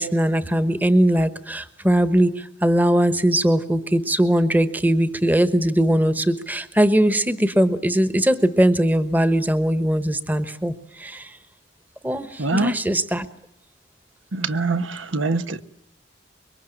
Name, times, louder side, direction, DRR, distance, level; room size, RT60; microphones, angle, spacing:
voice 1, 0.0-11.4 12.0-13.3, right 1 dB, 10° right, 12 dB, 1.1 m, -20 dB
voice 2, 12.4-12.7 14.3-15.6, right 3 dB, 85° right, 10 dB, 1.3 m, -23 dB
26.0 x 23.0 x 9.1 m, 0.71 s
head